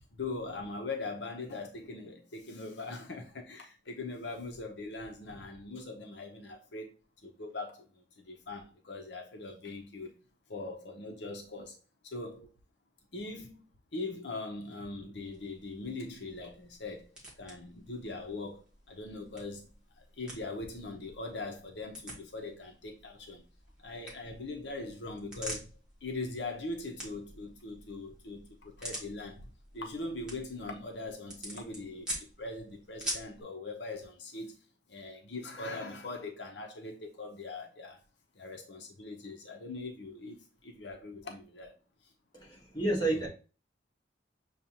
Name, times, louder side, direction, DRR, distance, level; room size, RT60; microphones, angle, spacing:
voice 1, 0.2-6.9 7.2-10.1 10.5-11.8 12.0-12.5 13.1-13.6 13.9-17.1 17.4-18.6 18.9-19.7 20.2-23.4 23.8-25.6 26.0-29.5 29.7-34.6 34.9-38.0 38.4-41.7, left 3 dB, 70° left, 0.8 m, -41 dB
sound 1, 15.2-33.4, equal, 5° right, 1.3 m, -47 dB
voice 2, 42.3-43.3, right 2 dB, 20° left, 1.4 m, -30 dB
6.7 x 2.4 x 2.8 m
head